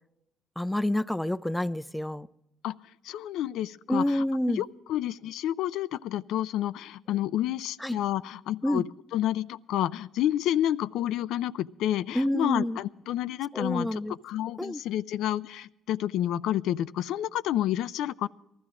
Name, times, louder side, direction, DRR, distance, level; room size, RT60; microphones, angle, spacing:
voice 1, 0.6-2.3 3.9-4.6 7.8-8.0 8.6-8.8 12.1-12.8 13.5-14.2 14.6-14.8, left 1 dB, 5° left, 17 dB, 0.4 m, -28 dB
voice 2, 3.0-18.3, left 12 dB, 75° left, 17 dB, 0.4 m, -30 dB
19.0 x 13.5 x 3.7 m, 0.87 s
cardioid pair, 100°, 0 cm